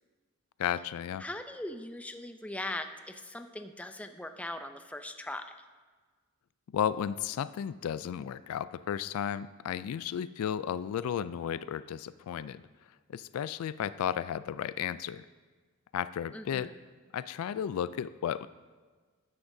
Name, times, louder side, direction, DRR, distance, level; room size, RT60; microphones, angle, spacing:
voice 1, 0.6-1.2 6.7-12.6 13.1-15.2 15.9-16.7 17.1-18.5, left 9 dB, 75° left, 17 dB, 0.3 m, -33 dB
voice 2, 1.2-5.5 16.3-16.8, left 1 dB, 5° left, 7 dB, 0.4 m, -40 dB
13.0 x 9.9 x 2.7 m, 1.4 s
head